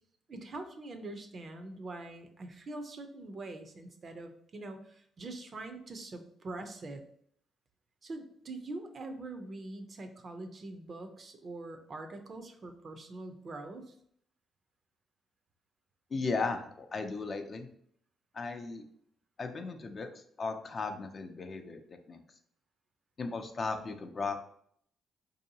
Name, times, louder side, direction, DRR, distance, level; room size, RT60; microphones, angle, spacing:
voice 1, 0.3-7.0 8.0-13.9, right 2 dB, 45° right, 6 dB, 0.6 m, -43 dB
voice 2, 16.1-17.7 18.3-18.8 19.4-22.2 23.2-24.5, left 4 dB, 40° left, 6 dB, 0.5 m, -36 dB
4.4 x 2.7 x 2.7 m, 0.64 s
cardioid pair, 90°, 0 cm